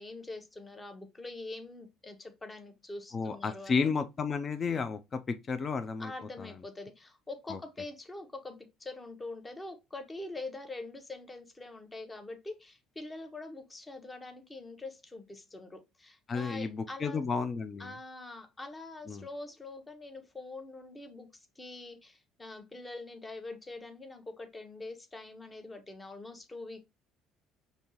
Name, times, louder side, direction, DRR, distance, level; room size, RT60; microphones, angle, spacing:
voice 1, 0.0-3.9 6.0-17.2 17.8-26.8, left 2 dB, 15° left, 0.8 m, -44 dB
voice 2, 3.1-6.1 6.4-6.5 7.5-7.6 16.3-17.9 19.1-19.3, left 5 dB, 30° left, 0.4 m, -32 dB
5.2 x 2.7 x 2.9 m
cardioid pair, 130°, 0 cm